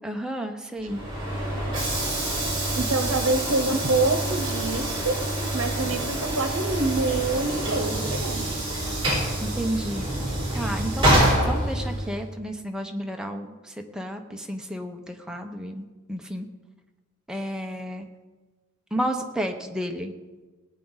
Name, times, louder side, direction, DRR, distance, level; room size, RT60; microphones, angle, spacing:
voice 1, 0.0-1.0 9.4-16.5 17.3-18.1 18.9-20.1, equal, 5° right, 3 dB, 0.8 m, -32 dB
Train / Sliding door, 0.8-12.2, right 1 dB, 25° right, 4.7 m, -26 dB
voice 2, 2.8-5.2 5.5-8.5, right 3 dB, 70° right, 6 dB, 1.0 m, -26 dB
18.0 x 9.1 x 4.0 m, 1.3 s
head